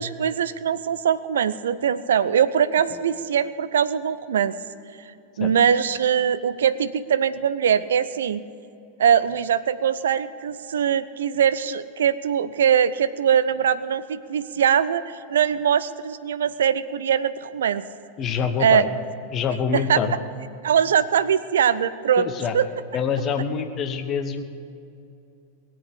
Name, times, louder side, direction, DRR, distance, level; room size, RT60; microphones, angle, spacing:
voice 1, 0.0-4.6 5.4-8.4 9.0-17.8 18.6-18.8 19.7-20.0 20.6-22.7, right 8 dB, 65° right, 16 dB, 0.6 m, -22 dB
voice 2, 18.2-18.9 19.3-20.1 22.2-22.5 22.9-24.4, left 6 dB, 30° left, 7 dB, 1.2 m, -25 dB
20.0 x 7.8 x 8.4 m, 2.7 s
figure-of-eight pair, 90°, 0 cm